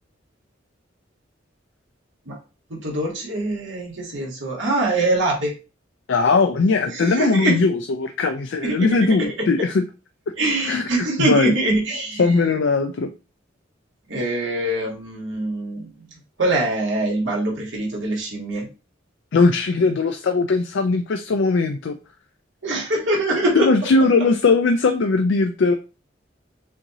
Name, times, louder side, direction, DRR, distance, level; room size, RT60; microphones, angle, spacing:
voice 1, 2.7-5.5 6.9-7.6 8.6-9.5 10.4-12.3 14.1-15.9 16.4-18.7 22.6-23.7, right 2 dB, 80° right, -2 dB, 1.9 m, -23 dB
voice 2, 6.1-9.8 10.7-10.9 11.2-11.5 12.2-13.1 19.3-21.9 23.6-25.8, left 4 dB, 70° left, 7 dB, 0.4 m, -19 dB
6.4 x 2.7 x 3.0 m, 0.32 s
head